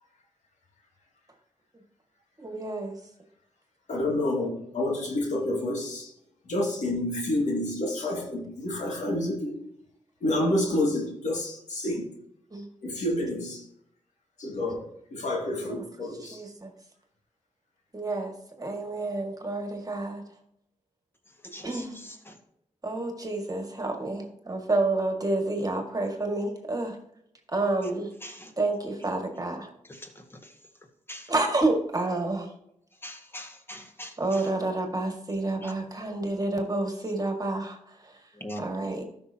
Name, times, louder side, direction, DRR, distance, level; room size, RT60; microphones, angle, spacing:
voice 1, 2.4-3.0 12.5-12.7 15.7-15.8 16.2-16.7 17.9-20.2 21.6-22.0 22.8-27.0 27.5-28.1 28.6-29.7 31.3-32.5 34.2-37.8 38.6-39.1, right 2 dB, 30° right, 2.0 m, -29 dB
voice 2, 3.9-6.1 6.5-9.6 10.2-12.0 12.8-13.6 14.4-16.4, left 1 dB, 75° left, 2.3 m, -29 dB
voice 3, 33.0-34.1 35.6-35.7 38.4-38.6, equal, 20° left, 1.7 m, -40 dB
13.0 x 5.9 x 2.9 m
cardioid pair, 50°, 12 cm